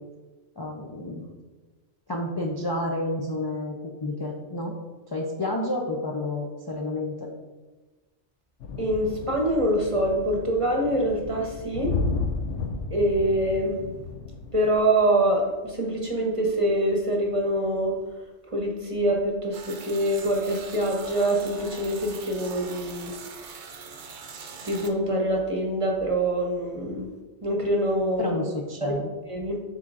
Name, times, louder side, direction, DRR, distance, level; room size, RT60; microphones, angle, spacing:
voice 1, 0.6-1.2 2.1-4.7 5.1-7.3 28.2-29.0, left 1 dB, 30° left, -1 dB, 0.4 m, -30 dB
sound 1, 8.6-14.8, left 4 dB, 90° left, 0.9 m, -33 dB
voice 2, 8.8-12.0 12.9-13.8 14.5-18.0 18.5-23.1 24.6-27.1 27.4-28.3 28.8-29.0 29.3-29.6, right 1 dB, 30° right, 0 dB, 0.9 m, -25 dB
sound 2, 19.5-24.9, right 6 dB, 70° right, 1.0 m, -42 dB
9.8 x 4.3 x 2.5 m, 1.2 s
omnidirectional pair, 1.2 m